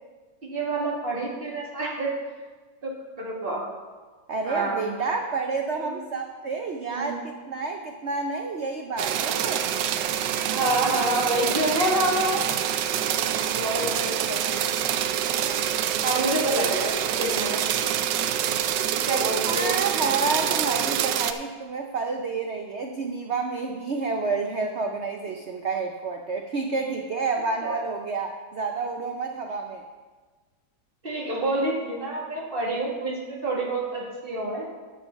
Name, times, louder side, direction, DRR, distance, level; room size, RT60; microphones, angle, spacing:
voice 1, 0.4-2.1 2.8-2.9 3.2-3.6 4.4-4.9 5.8-6.0 6.9-7.1 10.5-12.4 13.5-14.7 15.3-15.6 16.0-17.6 19.0-19.7 27.6-27.8 31.0-34.7, right 1 dB, 30° right, -3 dB, 2.0 m, -27 dB
voice 2, 4.3-9.7 19.4-29.8, right 4 dB, 90° right, 4 dB, 0.6 m, -29 dB
sound 1, 9.0-21.3, right 10 dB, 75° right, 1.1 m, -26 dB
11.0 x 5.8 x 5.9 m, 1.4 s
omnidirectional pair, 2.1 m